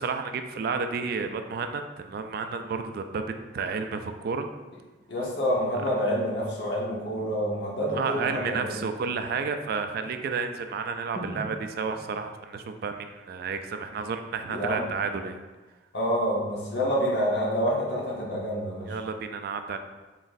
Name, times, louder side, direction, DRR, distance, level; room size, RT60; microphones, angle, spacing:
voice 1, 0.0-3.2 3.5-4.5 7.9-15.4 18.9-19.8, right 5 dB, 60° right, 7 dB, 0.3 m, -31 dB
voice 2, 5.1-8.8 11.3-11.4 14.5-14.8 15.9-19.0, equal, 70° left, -4 dB, 1.2 m, -27 dB
4.0 x 4.0 x 2.6 m, 1.2 s
head